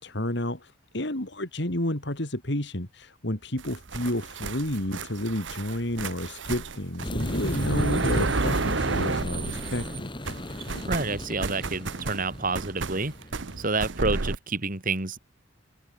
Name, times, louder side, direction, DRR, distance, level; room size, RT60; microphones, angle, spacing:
voice 1, 0.0-10.1, left 1 dB, 60° left, 3.7 m, -31 dB
sound 1, 3.6-10.0 10.2-14.4, right 3 dB, 70° right, 1.2 m, -31 dB
sound 2, 7.0-13.6, left 1 dB, 25° left, 3.6 m, -35 dB
voice 2, 10.8-13.1 13.6-15.2, right 3 dB, 45° right, 2.8 m, -28 dB
open air
head